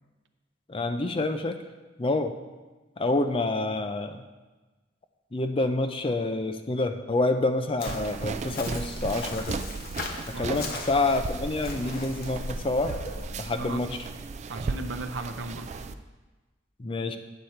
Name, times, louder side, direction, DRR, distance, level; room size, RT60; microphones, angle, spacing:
voice 1, 0.7-1.5 2.0-2.3 3.0-4.2 5.3-9.6 10.4-12.9 13.4-13.9 16.8-17.2, left 2 dB, 30° left, 7 dB, 0.5 m, -27 dB
Chirp tweet, 7.8-13.3, left 2 dB, 50° left, 1.0 m, -38 dB
sound 1, 7.9-15.9, right 4 dB, 35° right, 0.3 m, -36 dB
voice 2, 10.3-10.8 13.5-14.0 14.5-15.7, right 2 dB, 70° right, 7 dB, 0.7 m, -37 dB
8.2 x 7.9 x 4.4 m, 1.2 s
head